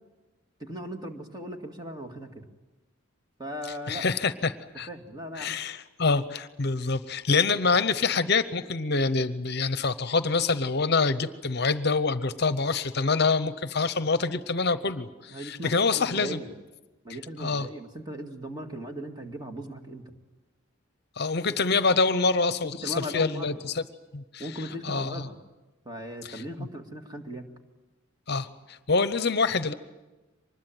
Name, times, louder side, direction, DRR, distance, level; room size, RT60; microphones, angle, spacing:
voice 1, 0.6-2.4 3.4-4.1 4.9-5.6 15.3-16.5 17.0-20.1 22.6-23.6 24.4-25.4 25.9-27.4 28.3-28.4, equal, 20° right, 4 dB, 2.1 m, -38 dB
voice 2, 3.9-4.9 5.3-16.4 17.4-17.7 21.2-23.8 24.1-24.5 24.8-25.2 26.2-26.4 28.3-29.7, left 4 dB, 50° left, 13 dB, 0.8 m, -26 dB
24.5 x 20.5 x 9.1 m, 1.1 s
head